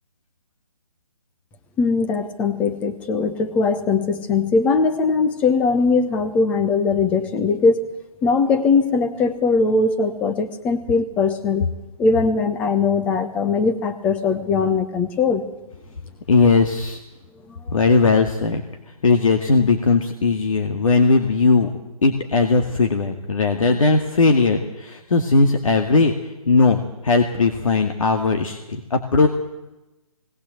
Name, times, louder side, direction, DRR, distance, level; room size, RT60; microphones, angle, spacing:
voice 1, 1.8-7.9 8.2-11.7 12.0-15.4 17.5-17.6, left 4 dB, 5° left, 9 dB, 0.8 m, -20 dB
voice 2, 16.3-17.0 17.7-18.6 19.0-21.7 22.0-29.3, left 3 dB, 60° left, 4 dB, 2.2 m, -18 dB
19.0 x 19.0 x 7.9 m, 1.0 s
hypercardioid pair, 160°, 19 cm